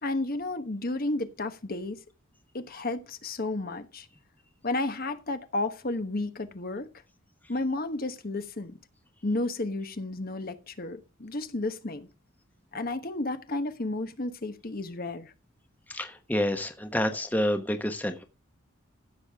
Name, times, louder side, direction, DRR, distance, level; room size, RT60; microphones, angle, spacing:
voice 1, 0.0-2.0 2.5-4.1 4.6-6.9 7.5-8.8 9.2-12.1 12.7-15.3, left 2 dB, 45° left, 1.2 m, -32 dB
voice 2, 15.9-18.2, left 1 dB, 10° left, 1.1 m, -28 dB
15.0 x 7.3 x 3.6 m
head